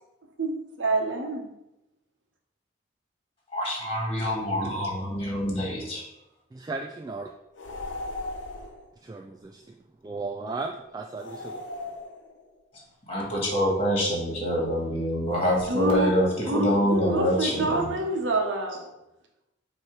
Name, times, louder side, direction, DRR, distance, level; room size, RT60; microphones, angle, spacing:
voice 1, 0.4-1.5 15.7-16.2 16.4-18.9, right 2 dB, 85° right, 2 dB, 1.2 m, -27 dB
voice 2, 3.5-6.0 13.1-17.9, equal, 30° left, -4 dB, 2.1 m, -26 dB
voice 3, 6.5-7.3 9.0-9.8 10.0-11.6, right 3 dB, 20° right, 2 dB, 0.3 m, -35 dB
sound 1, 7.5-8.9 11.1-12.6 15.3-16.4, left 2 dB, 85° left, 0.8 m, -38 dB
7.3 x 3.2 x 4.6 m, 0.90 s
head